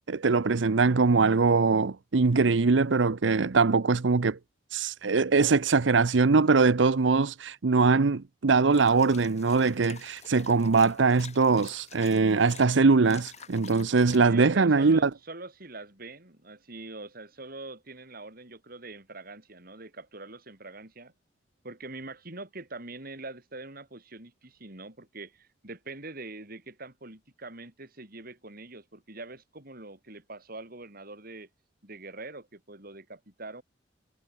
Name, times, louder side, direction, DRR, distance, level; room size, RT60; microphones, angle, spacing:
voice 1, 0.1-4.4 4.7-15.1, right 4 dB, 90° right, 0.7 m, -22 dB
sound 1, 8.7-12.6 13.0-14.2, left 7 dB, 40° left, 4.2 m, -49 dB
voice 2, 14.3-21.1 21.6-31.5 31.8-33.6, right 2 dB, 55° right, 5.1 m, -43 dB
head